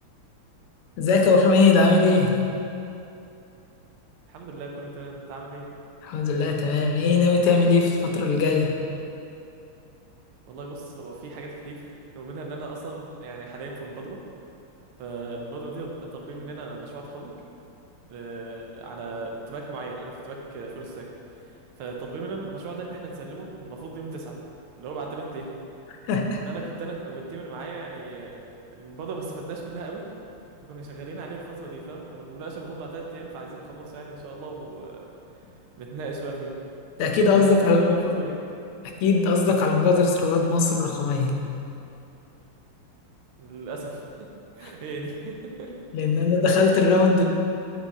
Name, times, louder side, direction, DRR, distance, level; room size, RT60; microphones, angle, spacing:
voice 1, 1.0-2.4 6.0-8.8 26.1-26.4 37.0-38.2 39.0-41.4 44.6-44.7 45.9-47.3, left 4 dB, 90° left, 2 dB, 1.6 m, -20 dB
voice 2, 4.3-5.6 10.5-14.2 15.0-17.4 18.1-21.1 21.8-24.4 24.8-25.6 26.4-28.4 28.7-30.0 30.6-35.1 35.8-36.5 37.2-38.4 43.4-44.3 44.5-45.7 46.2-46.3, right 3 dB, 80° right, 0 dB, 1.6 m, -37 dB
8.2 x 3.8 x 3.6 m, 2.7 s
omnidirectional pair, 2.4 m